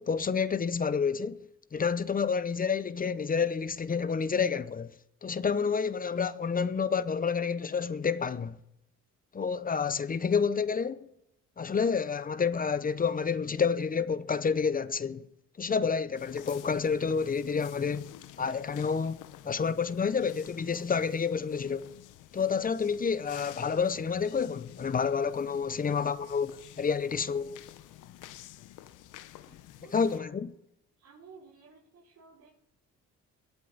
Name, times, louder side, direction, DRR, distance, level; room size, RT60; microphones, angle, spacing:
voice 1, 0.0-4.9 5.2-8.6 9.3-11.1 11.6-15.3 15.6-18.1 18.4-21.9 22.3-27.6 29.9-30.5, left 6 dB, 30° left, 0.6 m, -29 dB
sound 1, 16.1-30.2, left 13 dB, 90° left, 0.8 m, -50 dB
voice 2, 25.9-26.4 26.7-26.8 29.5-30.3 31.0-32.5, right 4 dB, 65° right, 5.4 m, -55 dB
21.5 x 8.2 x 4.0 m
cardioid pair, 90°, 30 cm